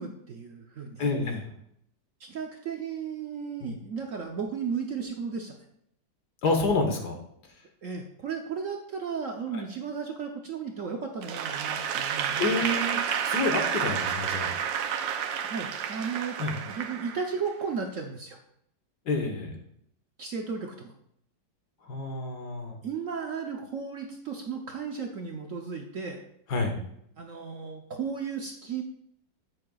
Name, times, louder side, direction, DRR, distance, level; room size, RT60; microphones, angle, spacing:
voice 1, 0.0-1.1 2.2-5.5 7.8-12.7 15.5-16.4 16.6-18.4 20.2-20.9 22.8-26.2 27.2-28.8, right 6 dB, 60° right, 2 dB, 0.9 m, -35 dB
voice 2, 1.0-1.5 3.6-3.7 6.4-7.2 9.5-9.6 12.4-14.5 16.4-16.6 19.1-19.6 21.8-22.8 26.5-26.8, left 3 dB, 65° left, 3 dB, 1.7 m, -28 dB
Applause / Crowd, 11.2-17.6, right 8 dB, 85° right, 1.4 m, -30 dB
13.5 x 6.7 x 2.3 m, 0.72 s
omnidirectional pair, 2.0 m